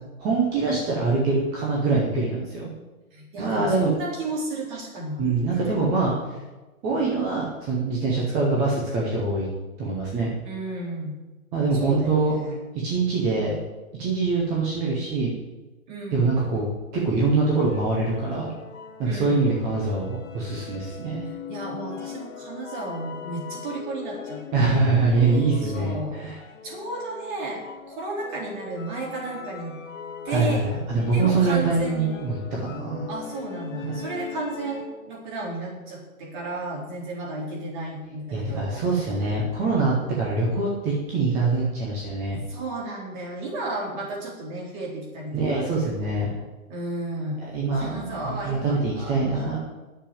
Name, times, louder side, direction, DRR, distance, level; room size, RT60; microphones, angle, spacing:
voice 1, 0.2-2.7 3.4-3.9 5.2-6.1 6.8-9.5 9.8-10.3 11.5-12.3 12.7-13.6 14.0-15.3 16.1-16.7 16.9-18.5 19.0-21.3 24.5-26.4 30.3-33.1 33.8-34.0 38.3-42.4 45.3-46.3 47.5-49.6, right 3 dB, 5° right, -3 dB, 0.6 m, -24 dB
voice 2, 3.1-6.3 10.4-11.2 11.7-12.6 15.9-16.4 19.0-19.4 21.5-25.0 25.6-26.2 26.6-29.8 30.2-30.7 31.1-32.1 33.1-39.1 42.5-46.4 46.7-47.4 47.7-49.4, right 2 dB, 35° right, -2 dB, 3.9 m, -33 dB
sound 1, 17.4-35.1, left 7 dB, 60° left, 1.7 m, -40 dB
10.5 x 6.8 x 8.6 m, 1.2 s
hypercardioid pair, 155°, 43 cm